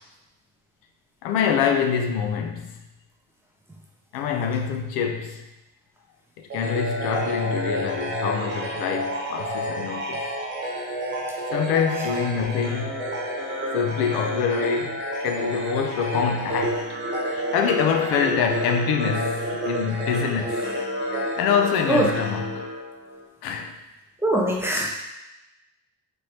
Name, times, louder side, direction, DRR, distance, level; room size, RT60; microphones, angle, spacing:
voice 1, 1.2-2.7 4.1-5.4 6.4-10.2 11.5-13.0 13.7-17.0 17.3-20.6 21.4-22.7 23.4-23.7, left 7 dB, 85° left, 4 dB, 0.6 m, -25 dB
sound 1, 6.5-23.3, right 1 dB, 30° right, 0.9 m, -30 dB
voice 2, 24.2-24.9, right 1 dB, 5° right, -3 dB, 0.4 m, -22 dB
4.4 x 3.0 x 3.2 m, 0.97 s
cardioid pair, 160°, 36 cm